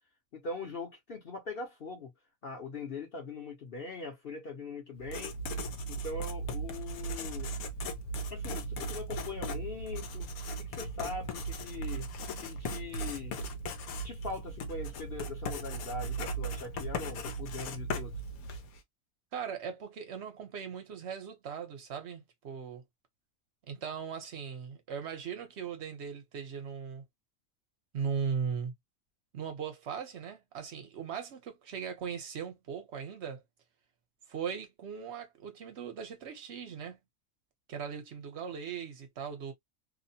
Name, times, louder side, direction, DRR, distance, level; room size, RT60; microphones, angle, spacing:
voice 1, 0.3-2.1 2.4-5.3 5.9-7.5 8.3-10.3 10.6-12.1 12.4-13.4 14.0-18.2, left 3 dB, 50° left, 0.9 m, -41 dB
Writing, 5.0-18.8, right 1 dB, 90° left, 1.1 m, -37 dB
voice 2, 19.3-22.8 23.7-27.0 27.9-28.7 29.3-33.4 34.3-37.0 37.7-39.5, right 7 dB, 55° right, 1.0 m, -38 dB
2.8 x 2.1 x 2.6 m
omnidirectional pair, 1.5 m